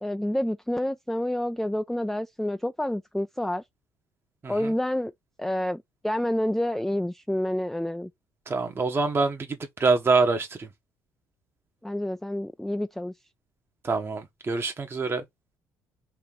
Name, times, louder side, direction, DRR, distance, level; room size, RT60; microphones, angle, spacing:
voice 1, 0.0-3.6 4.5-5.1 5.4-8.1 11.8-13.1, left 1 dB, 5° left, 0.3 m, -28 dB
voice 2, 8.5-9.5 9.8-10.7 13.8-15.2, right 4 dB, 30° right, 0.9 m, -25 dB
4.4 x 2.6 x 3.7 m
hypercardioid pair, 60°, 8 cm